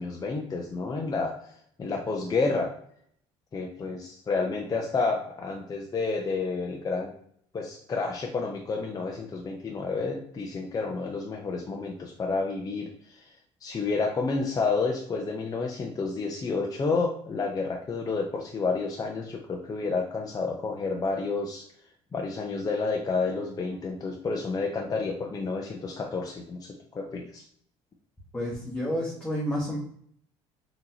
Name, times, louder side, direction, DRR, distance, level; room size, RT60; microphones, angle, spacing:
voice 1, 0.0-1.3 1.8-2.7 3.5-7.1 7.5-13.3 13.6-21.7 22.1-27.4, left 4 dB, 25° left, 1 dB, 0.5 m, -30 dB
voice 2, 28.3-29.8, equal, 10° left, -6 dB, 1.1 m, -30 dB
3.7 x 2.8 x 2.7 m, 0.64 s
supercardioid pair, 80°, 14 cm